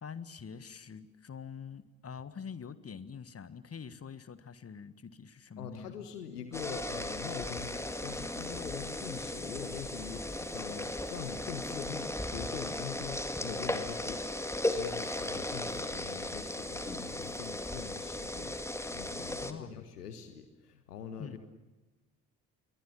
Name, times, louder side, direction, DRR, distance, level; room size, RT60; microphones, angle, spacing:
voice 1, 0.0-6.1 19.4-19.8 21.2-21.4, left 6 dB, 30° left, 15 dB, 1.7 m, -45 dB
voice 2, 5.6-14.3 14.7-18.6 18.9-21.4, left 7 dB, 80° left, 9 dB, 1.6 m, -43 dB
sound 1, 6.5-19.5, left 1 dB, 5° left, 2.2 m, -36 dB
28.0 x 22.5 x 7.3 m, 1.1 s
figure-of-eight pair, 50°, 46 cm